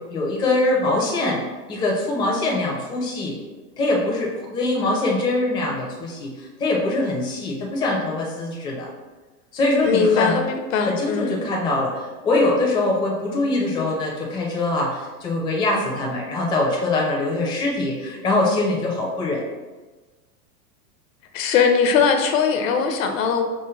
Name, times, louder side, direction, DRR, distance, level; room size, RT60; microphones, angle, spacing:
voice 1, 0.0-1.4 1.7-3.3 3.8-8.9 9.5-10.4 10.8-19.4, left 2 dB, 10° left, -2 dB, 0.4 m, -23 dB
voice 2, 9.8-11.4 21.3-23.4, left 6 dB, 55° left, 5 dB, 0.6 m, -20 dB
4.9 x 2.2 x 3.0 m, 1.3 s
figure-of-eight pair, 90°, 47 cm